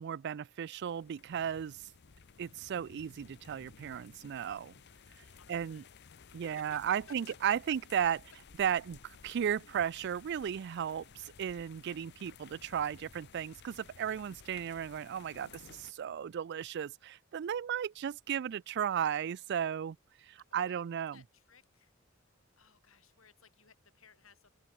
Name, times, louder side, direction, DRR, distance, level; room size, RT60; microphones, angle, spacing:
voice 1, 0.0-1.8 2.4-4.7 5.5-5.8 6.3-8.2 8.6-20.0 20.3-21.2, right 8 dB, 55° right, 0.3 m, -35 dB
sound 1, 0.8-15.9, left 6 dB, 55° left, 0.7 m, -57 dB
voice 2, 5.4-5.9 6.3-7.3 20.5-21.9 22.6-24.5, left 5 dB, 85° left, 5.1 m, -59 dB
open air
head